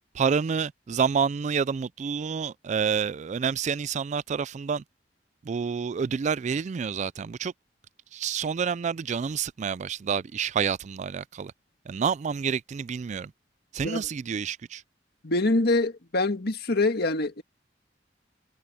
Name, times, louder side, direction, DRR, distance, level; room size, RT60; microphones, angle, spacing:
voice 1, 0.1-4.8 5.4-7.5 8.1-11.5 11.9-13.3 13.7-14.8, right 6 dB, 40° right, 0.3 m, -28 dB
voice 2, 15.2-17.4, left 2 dB, 60° left, 1.8 m, -25 dB
head